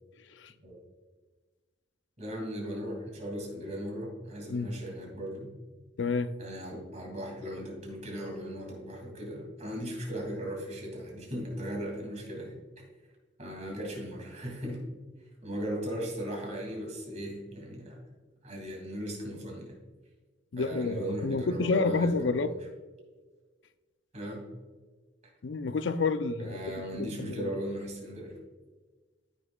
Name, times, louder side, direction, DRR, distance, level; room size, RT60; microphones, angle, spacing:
voice 1, 2.2-5.5 6.4-12.6 13.4-14.8 15.4-18.0 18.4-19.7 20.5-22.5 24.1-24.4 26.4-28.4, equal, 40° right, -1 dB, 2.6 m, -37 dB
voice 2, 6.0-6.3 20.5-22.5 25.4-26.6 27.0-27.5, left 4 dB, 75° left, 11 dB, 0.5 m, -29 dB
14.0 x 6.4 x 2.3 m, 1.3 s
head